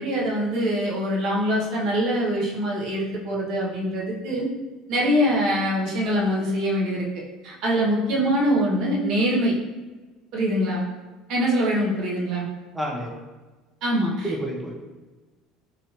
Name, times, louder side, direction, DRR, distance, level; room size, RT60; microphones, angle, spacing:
voice 1, 0.0-4.5 4.9-7.1 7.4-9.5 10.3-10.8 11.3-12.5 13.8-14.3, equal, 65° right, -3 dB, 0.9 m, -23 dB
voice 2, 12.7-13.1 14.2-14.7, right 1 dB, 5° right, -2 dB, 0.6 m, -29 dB
3.0 x 2.6 x 2.9 m, 1.3 s
supercardioid pair, 90°, 0 cm